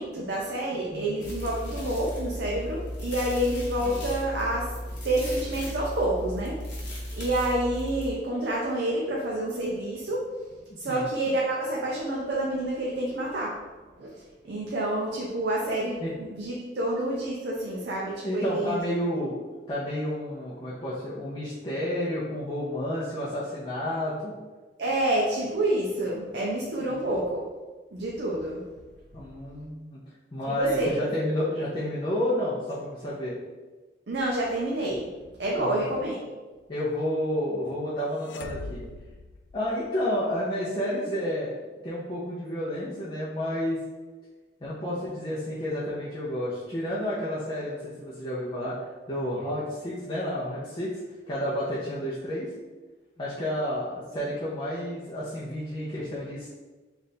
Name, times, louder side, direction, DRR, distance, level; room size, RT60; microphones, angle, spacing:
voice 1, 0.0-4.7 5.0-10.3 10.8-13.5 14.0-14.1 14.4-16.0 16.3-18.8 24.8-27.4 27.9-28.6 30.5-30.9 34.1-35.1 35.4-36.1, right 1 dB, 65° right, -3 dB, 0.5 m, -28 dB
sound 1, 1.2-8.1, equal, 45° left, 1.2 m, -35 dB
voice 2, 17.8-19.3 19.7-24.4 26.8-27.1 29.1-30.0 30.3-33.4 35.6-35.8 36.7-38.8 39.5-41.6 41.8-43.8 44.6-51.0 51.3-52.5 53.2-56.5, left 1 dB, 30° left, -8 dB, 0.6 m, -31 dB
sound 2, 38.2-40.2, left 3 dB, 80° left, 0.3 m, -42 dB
3.3 x 2.5 x 4.2 m, 1.3 s
head